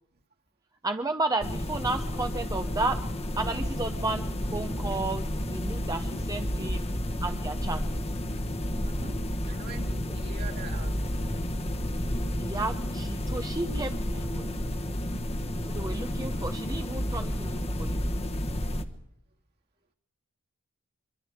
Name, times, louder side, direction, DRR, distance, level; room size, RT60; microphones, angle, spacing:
voice 1, 0.8-3.0 3.4-6.8 7.2-7.8 12.4-13.9 14.3-14.4 15.7-18.0, right 2 dB, 15° right, 6 dB, 0.8 m, -32 dB
sound 1, 1.4-18.8, equal, 30° left, 1.2 m, -31 dB
voice 2, 8.8-11.3 13.5-15.0, right 3 dB, 45° right, 2 dB, 2.2 m, -45 dB
24.0 x 23.5 x 5.1 m, 0.78 s
head